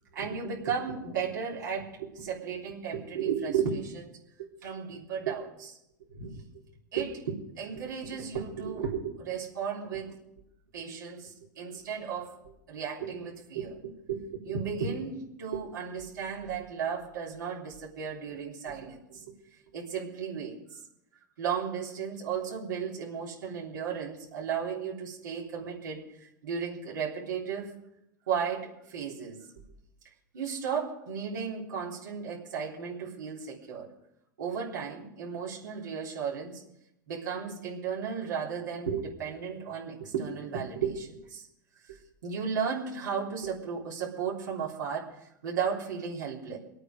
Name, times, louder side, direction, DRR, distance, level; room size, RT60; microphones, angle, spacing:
voice 1, 0.1-5.8 6.1-6.4 6.9-10.2 10.7-19.3 19.7-20.8 21.4-27.7 28.3-29.5 30.3-33.9 34.4-36.6 37.1-41.4 41.8-46.6, right 6 dB, 85° right, -4 dB, 3.5 m, -34 dB
24.5 x 9.0 x 5.1 m, 0.83 s
hypercardioid pair, 105°, 10 cm